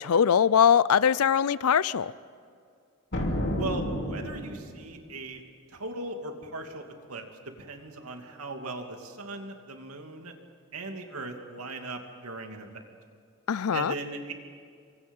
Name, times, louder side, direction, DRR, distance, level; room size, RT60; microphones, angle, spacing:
voice 1, 0.0-2.1 13.5-13.9, left 8 dB, 85° left, 19 dB, 0.5 m, -22 dB
sound 1, 3.1-4.9, left 1 dB, 55° left, 3.0 m, -30 dB
voice 2, 3.6-5.4 5.7-10.3 10.7-12.8 13.7-14.3, right 2 dB, 85° right, 4 dB, 2.7 m, -38 dB
29.0 x 24.5 x 5.5 m, 2.3 s
head